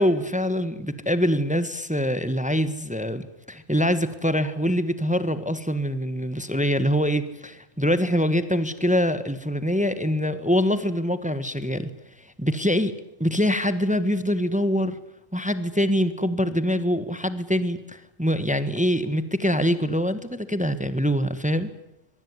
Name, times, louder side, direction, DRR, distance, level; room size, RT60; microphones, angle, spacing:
voice 1, 0.0-11.9 12.2-12.9 13.2-15.0 15.3-21.7, equal, 5° right, 12 dB, 1.4 m, -24 dB
24.5 x 23.5 x 9.7 m, 0.85 s
omnidirectional pair, 1.5 m